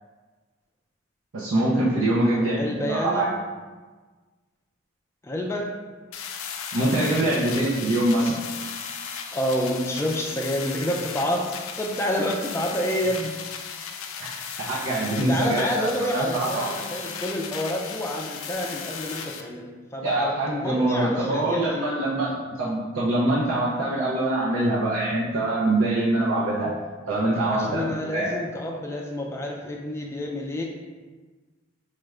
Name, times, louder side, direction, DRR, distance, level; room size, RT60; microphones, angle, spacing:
voice 1, 1.3-3.3 6.7-8.4 14.2-14.4 14.7-16.7 20.0-26.7 27.1-28.3, right 1 dB, 90° right, -7 dB, 0.6 m, -24 dB
voice 2, 2.2-3.3 5.2-5.7 9.3-13.3 15.3-21.8 27.5-30.6, left 1 dB, 15° left, 0 dB, 0.3 m, -28 dB
sound 1, 6.1-19.4, left 6 dB, 85° left, 0.4 m, -36 dB
4.3 x 2.4 x 3.2 m, 1.4 s
head